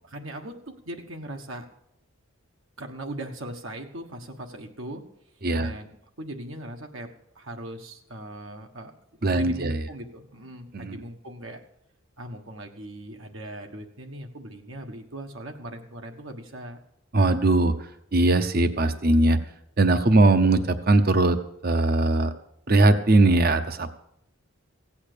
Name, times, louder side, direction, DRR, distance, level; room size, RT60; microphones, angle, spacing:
voice 1, 0.0-1.7 2.8-5.0 5.6-5.9 6.2-7.1 7.3-8.9 9.2-11.6 12.2-16.8, right 1 dB, 70° right, 3 dB, 1.4 m, -39 dB
voice 2, 9.2-9.8 10.7-11.0 17.1-17.7 18.1-19.4 19.8-21.4 21.6-22.3 22.7-23.9, right 2 dB, 45° right, 10 dB, 0.8 m, -20 dB
16.0 x 8.6 x 6.8 m, 0.77 s
head